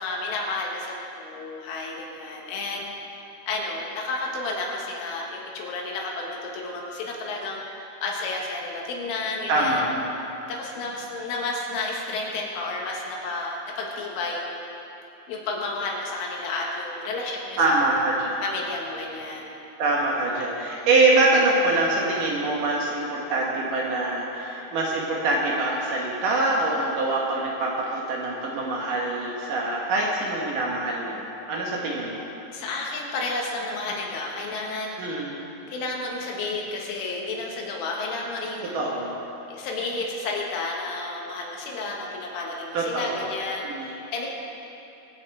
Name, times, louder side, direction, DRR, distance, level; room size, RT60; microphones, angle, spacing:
voice 1, 0.0-9.8 10.5-14.6 15.3-17.8 18.4-19.6 32.5-34.9 35.7-38.7 39.5-44.3, left 3 dB, 80° left, -2 dB, 4.1 m, -31 dB
voice 2, 9.5-10.1 17.6-18.4 19.8-32.3 35.0-35.4 38.7-39.2 42.7-43.3 43.6-43.9, right 2 dB, 75° right, -3 dB, 1.9 m, -24 dB
24.0 x 8.6 x 4.7 m, 2.9 s
omnidirectional pair, 5.7 m